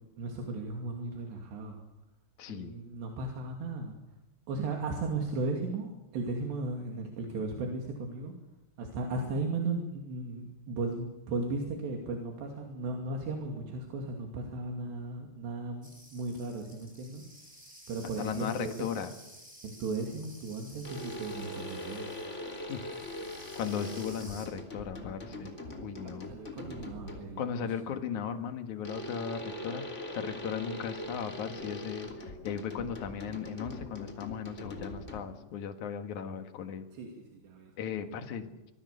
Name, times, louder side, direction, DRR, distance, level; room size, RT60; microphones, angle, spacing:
voice 1, 0.2-1.8 2.5-4.0 4.5-8.4 8.8-17.2 17.9-19.0 19.6-22.1 26.0-27.5 36.9-37.7, right 3 dB, 80° right, 1 dB, 4.8 m, -36 dB
voice 2, 2.4-2.7 18.2-19.1 22.7-22.9 23.6-25.5 25.8-26.3 27.4-36.9 37.8-38.7, left 7 dB, 55° left, 7 dB, 2.5 m, -37 dB
sound 1, 15.8-24.5, equal, 5° right, 5.8 m, -53 dB
sound 2, 20.8-27.5 28.8-35.5, left 1 dB, 20° left, 2.4 m, -42 dB
25.0 x 21.5 x 6.8 m, 0.99 s
omnidirectional pair, 4.9 m